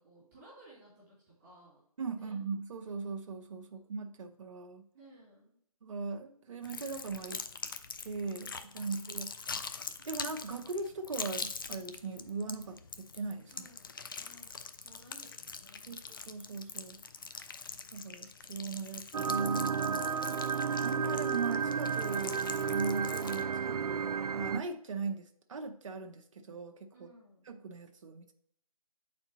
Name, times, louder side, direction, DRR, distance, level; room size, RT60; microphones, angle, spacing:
voice 1, 0.0-1.8 2.1-2.3 4.9-5.6 13.5-16.0 26.9-27.5, right 1 dB, 20° right, -7 dB, 2.7 m, -58 dB
voice 2, 2.0-4.8 5.8-7.4 8.0-9.5 10.0-13.7 15.9-17.0 17.9-20.1 20.8-27.1 27.4-28.3, right 4 dB, 55° right, 4 dB, 0.7 m, -39 dB
sound 1, 6.6-23.4, left 5 dB, 35° left, 0.4 m, -44 dB
sound 2, 19.1-24.6, right 6 dB, 80° right, 0.4 m, -32 dB
8.2 x 4.4 x 4.0 m, 0.68 s
figure-of-eight pair, 160°, 19 cm